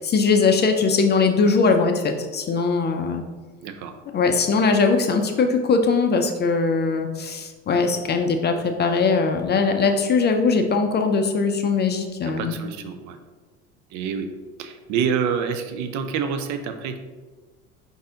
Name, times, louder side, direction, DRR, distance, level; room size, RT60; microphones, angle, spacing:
voice 1, 0.0-3.2 4.1-12.6, left 4 dB, 30° left, 5 dB, 0.5 m, -20 dB
voice 2, 3.6-4.0 12.2-13.2 13.9-14.3 14.6-17.0, right 6 dB, 50° right, 7 dB, 0.6 m, -27 dB
5.3 x 2.7 x 3.7 m, 1.3 s
hypercardioid pair, 80°, 37 cm